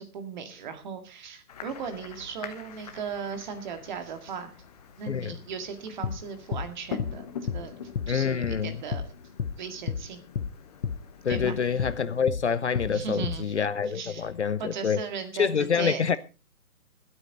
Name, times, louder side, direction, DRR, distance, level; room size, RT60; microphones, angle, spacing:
voice 1, 0.0-4.5 5.0-7.8 8.1-9.1 9.6-10.2 11.3-11.6 12.9-13.5 13.9-14.3 14.6-16.2, right 6 dB, 30° right, 2.0 m, -37 dB
sound 1, 1.5-12.2, left 7 dB, 25° left, 1.2 m, -44 dB
sound 2, 6.0-6.2 6.5-6.7 7.0-7.2 7.5-7.6 7.9-8.1 8.4-8.6 8.9-9.1 9.4-9.6 9.9-10.0 10.4-10.5 10.8-11.0 11.3-11.5 11.8-12.0 12.3-12.4 12.8-12.9 13.2-13.4, left 6 dB, 80° left, 1.0 m, -30 dB
voice 2, 8.1-8.8 11.2-15.0 15.4-16.2, left 6 dB, 50° left, 0.7 m, -27 dB
20.0 x 8.8 x 4.0 m
figure-of-eight pair, 145°, 46 cm